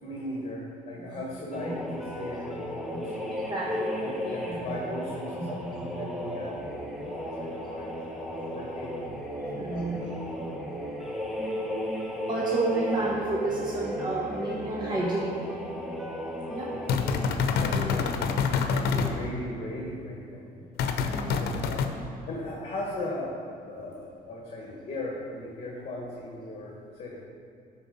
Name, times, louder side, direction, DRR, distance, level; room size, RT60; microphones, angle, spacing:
voice 1, 0.0-3.4 4.0-6.6 7.0-9.1 9.7-10.3 16.7-17.1 17.4-18.4 18.7-20.5 21.4-21.9 22.3-23.4 23.6-27.2, left 1 dB, 40° left, -3 dB, 1.6 m, -38 dB
sound 1, 1.5-17.2, equal, ahead, 1.2 m, -35 dB
voice 2, 3.4-4.6 5.4-5.8 7.2-7.4 9.5-10.0 12.3-15.4 16.5-16.7 17.6-18.0 18.9-19.2 21.1-21.5, right 2 dB, 25° right, -5 dB, 1.2 m, -31 dB
sound 2, 16.9-19.1 20.8-21.9, left 6 dB, 70° left, 0.8 m, -26 dB
13.0 x 4.7 x 5.3 m, 2.4 s
cardioid pair, 110°, 17 cm